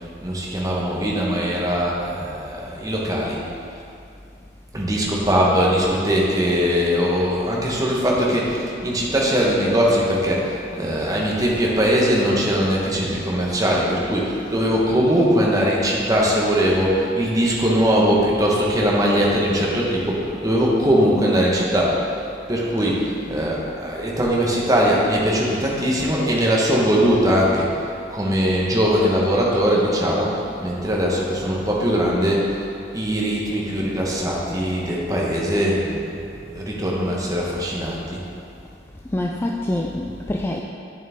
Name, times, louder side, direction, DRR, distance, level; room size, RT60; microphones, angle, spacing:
voice 1, 0.2-3.4 4.7-22.0 22.5-27.7 28.1-32.6 32.9-38.2, equal, 20° right, -4 dB, 1.2 m, -21 dB
voice 2, 39.1-40.6, left 1 dB, 15° left, -1 dB, 0.3 m, -25 dB
8.6 x 7.3 x 3.6 m, 2.5 s
head